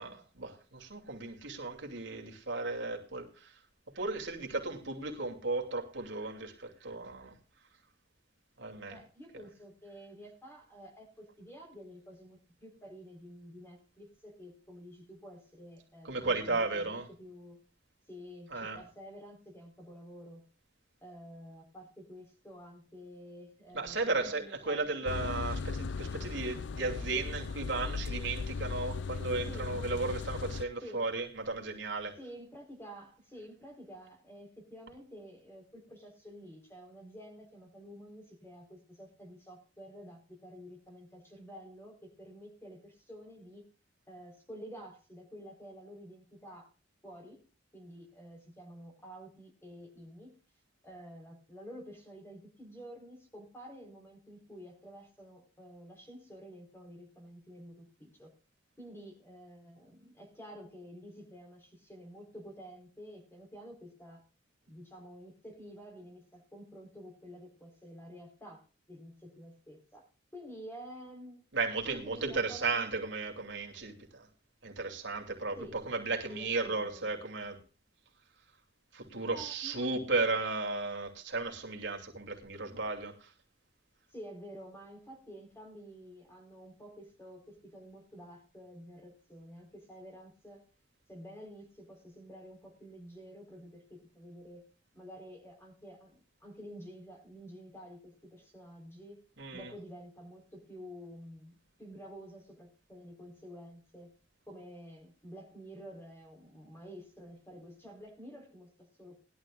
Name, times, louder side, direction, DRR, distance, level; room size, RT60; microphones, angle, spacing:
voice 1, 0.0-3.5 3.9-7.4 8.6-9.0 9.3-9.5 16.0-17.1 18.5-18.9 23.7-32.2 71.5-74.3 74.6-77.6 78.9-83.3 99.4-99.7, right 3 dB, 75° right, 2.7 m, -35 dB
voice 2, 8.9-17.6 18.1-20.5 21.0-25.1 29.5-29.7 30.8-31.0 32.2-43.6 44.1-46.7 47.0-47.4 47.7-50.3 50.8-58.3 58.8-64.2 64.7-71.4 71.9-72.8 75.6-75.7 76.3-77.1 79.3-80.2 84.1-90.6 91.1-94.6 94.9-99.2 99.5-104.1 104.5-109.2, equal, 15° left, 4.1 m, -50 dB
sound 1, 25.1-30.6, left 4 dB, 70° left, 0.5 m, -37 dB
20.0 x 12.0 x 2.4 m
head